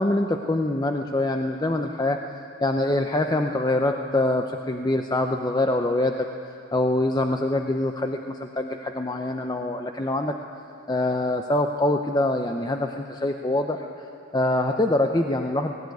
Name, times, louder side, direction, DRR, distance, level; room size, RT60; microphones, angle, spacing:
voice 1, 0.0-2.2 2.6-6.2 6.5-10.4 10.9-14.1 14.3-15.8, left 1 dB, 20° left, 4 dB, 0.6 m, -24 dB
17.5 x 17.5 x 9.3 m, 2.8 s
head